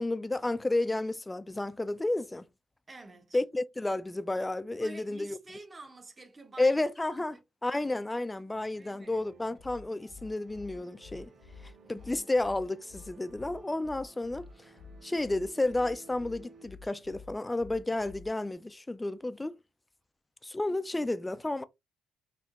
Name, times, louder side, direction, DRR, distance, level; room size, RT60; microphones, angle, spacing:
voice 1, 0.0-2.4 3.3-5.4 6.6-7.4 7.6-11.3 11.9-14.5 15.0-19.5 20.4-21.6, left 2 dB, 15° left, 0.3 m, -31 dB
voice 2, 2.9-3.4 4.7-6.8 7.1-7.4 8.8-9.2 11.9-12.3, right 2 dB, 25° right, 0.7 m, -49 dB
sound 1, 9.0-16.7, right 4 dB, 55° right, 0.9 m, -57 dB
sound 2, 9.6-18.5, left 4 dB, 75° left, 0.5 m, -50 dB
4.2 x 2.8 x 2.4 m
cardioid pair, 90°, 0 cm